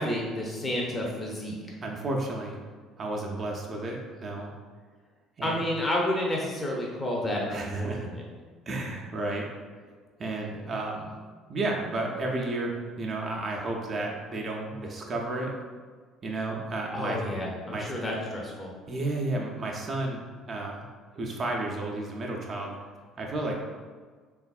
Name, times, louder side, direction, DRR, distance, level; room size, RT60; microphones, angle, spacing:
voice 1, 0.0-1.6 5.4-8.2 16.9-18.7, left 1 dB, 20° left, -3 dB, 0.6 m, -30 dB
voice 2, 1.8-2.6 3.0-4.5 5.4-5.6 7.5-8.1 8.7-9.5 10.2-11.1 11.5-15.5 16.2-17.2 17.7-17.9 18.9-20.2 20.5-22.7 23.2-23.5, right 2 dB, 40° right, -1 dB, 0.4 m, -32 dB
3.2 x 2.4 x 2.3 m, 1.5 s
hypercardioid pair, 55°, 0 cm